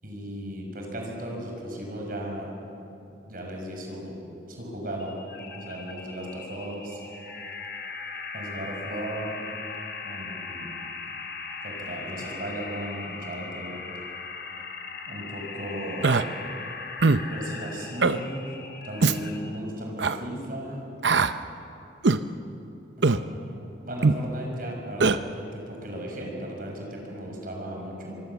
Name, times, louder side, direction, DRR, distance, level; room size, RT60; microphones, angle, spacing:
voice 1, 0.0-2.5 3.1-4.2 4.5-5.2 5.5-7.0 8.3-9.3 10.0-10.7 11.6-13.7 15.1-16.1 17.3-18.5 18.8-20.8 23.0-28.2, equal, 50° right, 0 dB, 6.1 m, -36 dB
sound 1, 5.0-19.6, left 4 dB, 60° left, 2.8 m, -39 dB
Human voice, 16.0-16.2 17.0-17.3 18.0-18.2 19.0-19.2 20.0-20.2 21.0-21.3 22.0-22.2 23.0-23.2 24.0-24.2 25.0-25.2, right 4 dB, 70° right, 0.7 m, -20 dB
24.5 x 24.0 x 7.2 m, 2.8 s
head